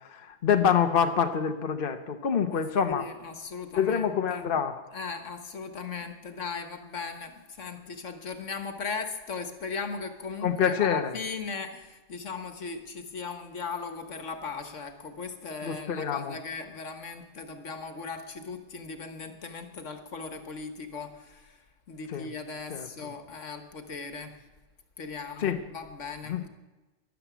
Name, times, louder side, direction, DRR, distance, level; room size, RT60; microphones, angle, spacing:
voice 1, 0.0-3.0 3.8-4.8 10.4-11.1 15.6-16.4 22.1-22.3 22.7-22.9 25.4-25.6 26.3-26.4, left 7 dB, 50° left, 7 dB, 1.1 m, -26 dB
voice 2, 2.5-4.5 4.9-24.4 25.0-26.5, left 5 dB, 80° left, 7 dB, 1.8 m, -38 dB
13.5 x 11.5 x 8.2 m, 1.1 s
omnidirectional pair, 1.3 m